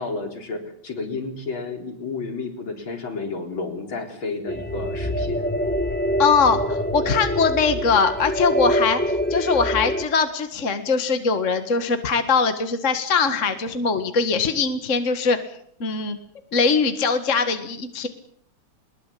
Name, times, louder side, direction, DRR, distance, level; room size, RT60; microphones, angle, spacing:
voice 1, 0.0-5.5, left 3 dB, 65° left, 4 dB, 4.8 m, -31 dB
sound 1, 4.5-10.0, equal, 5° left, 1.9 m, -25 dB
voice 2, 6.2-15.4 15.8-16.2 16.5-18.1, left 5 dB, 35° left, 8 dB, 2.0 m, -21 dB
22.5 x 21.5 x 8.5 m, 0.66 s
omnidirectional pair, 2.4 m